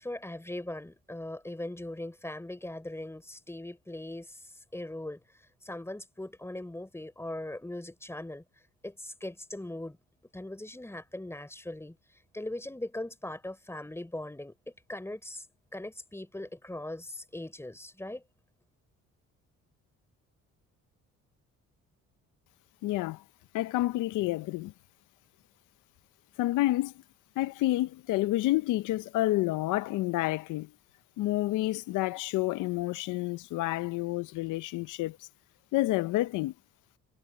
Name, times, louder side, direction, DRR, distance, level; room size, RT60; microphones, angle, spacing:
voice 1, 0.0-4.4 4.7-5.2 5.6-8.4 8.8-10.0 10.3-12.0 12.3-14.5 14.9-15.5 15.7-18.2, left 1 dB, 10° left, 4.5 m, -40 dB
voice 2, 22.8-23.2 23.5-24.7 26.4-26.9 27.4-30.7 31.2-35.3 35.7-36.5, left 17 dB, 90° left, 0.6 m, -29 dB
cardioid pair, 90°, 30 cm